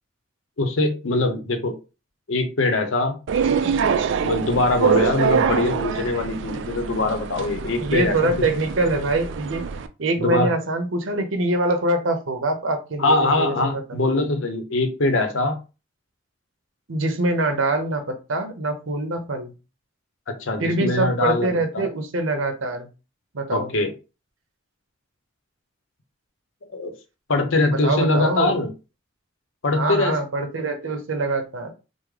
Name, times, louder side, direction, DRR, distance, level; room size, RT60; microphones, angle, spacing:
voice 1, 0.6-1.7 2.3-3.2 4.2-8.3 10.2-10.5 13.0-15.6 20.3-21.9 23.5-23.9 26.7-26.9 27.3-28.7 29.6-30.2, left 2 dB, 85° left, 6 dB, 0.7 m, -22 dB
sound 1, 3.3-9.9, right 6 dB, 70° right, 0.3 m, -24 dB
voice 2, 7.8-9.6 10.0-14.2 16.9-19.5 20.6-22.9 23.3-23.7 27.7-28.5 29.7-31.7, right 2 dB, 85° right, 6 dB, 0.7 m, -24 dB
3.6 x 2.0 x 3.2 m, 0.30 s
head